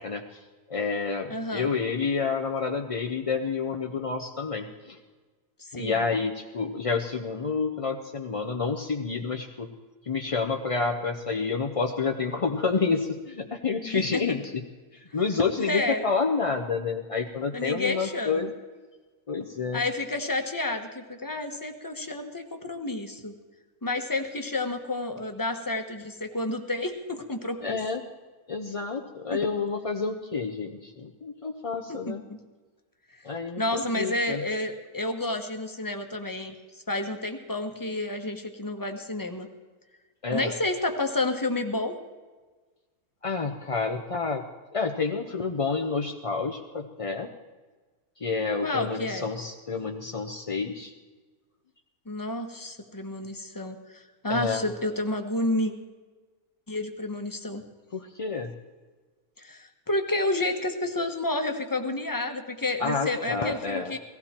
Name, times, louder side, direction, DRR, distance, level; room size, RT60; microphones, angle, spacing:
voice 1, 0.0-5.0 5.7-9.7 10.0-14.4 14.9-18.5 19.3-19.8 27.6-28.0 28.5-32.2 33.2-34.4 40.2-40.5 43.2-44.5 44.7-47.3 48.2-50.9 54.3-54.7 57.9-58.5 62.8-63.9, left 4 dB, 40° left, 3 dB, 0.5 m, -29 dB
voice 2, 1.3-1.7 5.6-6.0 13.9-14.2 15.6-16.0 17.5-18.5 19.7-23.3 23.8-27.8 29.3-29.4 31.9-32.2 33.1-33.2 33.6-39.5 40.3-41.9 48.6-49.3 52.1-55.7 56.7-57.6 59.4-64.0, left 2 dB, 15° left, 5 dB, 1.0 m, -30 dB
17.5 x 15.5 x 4.4 m, 1.3 s
omnidirectional pair, 1.6 m